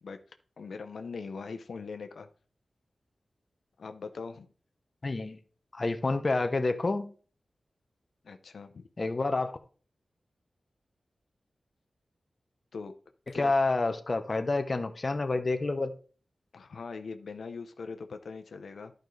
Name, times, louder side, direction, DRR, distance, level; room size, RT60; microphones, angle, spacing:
voice 1, 0.6-2.3 3.8-4.5 8.2-8.9 12.7-12.9 13.3-13.5 16.5-18.9, left 4 dB, 85° left, 0.7 m, -41 dB
voice 2, 5.0-5.4 5.7-7.1 9.0-9.6 13.3-15.9, left 3 dB, 40° left, 0.8 m, -28 dB
11.5 x 5.2 x 3.2 m
wide cardioid pair, 90°, 0 cm